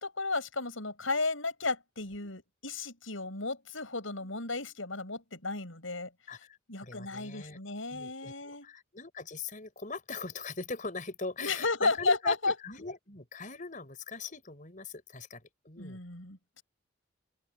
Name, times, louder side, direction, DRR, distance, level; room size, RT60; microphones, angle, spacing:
voice 1, 0.0-6.1 6.7-8.7 11.4-12.5 15.8-16.6, left 3 dB, 85° left, 7.9 m, -33 dB
voice 2, 6.3-7.6 7.9-16.0, left 3 dB, 40° left, 6.1 m, -41 dB
open air
head